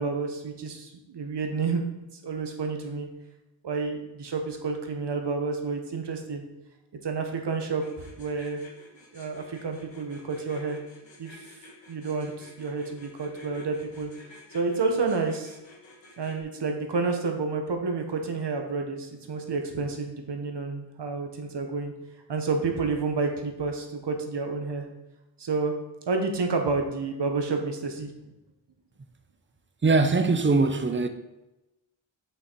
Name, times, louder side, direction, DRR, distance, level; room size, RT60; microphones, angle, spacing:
voice 1, 0.0-1.8 2.2-3.1 3.6-6.4 7.0-8.6 9.1-10.8 11.2-11.4 11.9-14.1 14.5-15.6 16.2-21.9 22.3-24.8 25.4-25.7 26.1-28.1, right 4 dB, 60° right, 1.3 m, -30 dB
sound 1, 7.8-16.4, left 3 dB, 70° left, 2.0 m, -51 dB
voice 2, 29.8-31.1, right 3 dB, 25° right, 0.7 m, -21 dB
6.2 x 5.8 x 4.6 m
cardioid pair, 65°, 47 cm